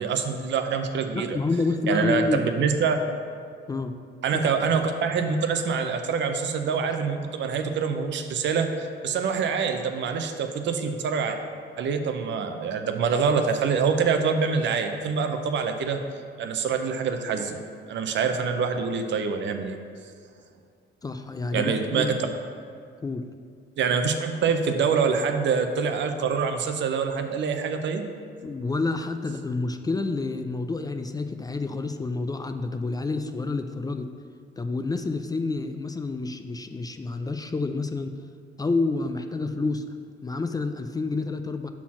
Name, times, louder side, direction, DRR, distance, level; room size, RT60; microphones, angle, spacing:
voice 1, 0.0-1.4 1.9-3.0 4.2-11.4 11.8-16.0 16.4-17.6 17.9-19.8 21.5-22.3 23.8-28.0, right 5 dB, 65° right, 6 dB, 0.6 m, -25 dB
voice 2, 1.1-2.4 3.7-4.0 21.0-22.1 23.0-23.3 28.4-34.1 34.6-38.2 38.6-39.8 40.2-41.7, left 3 dB, 20° left, 7 dB, 0.3 m, -28 dB
5.8 x 4.3 x 5.8 m, 2.2 s
cardioid pair, 90°, 20 cm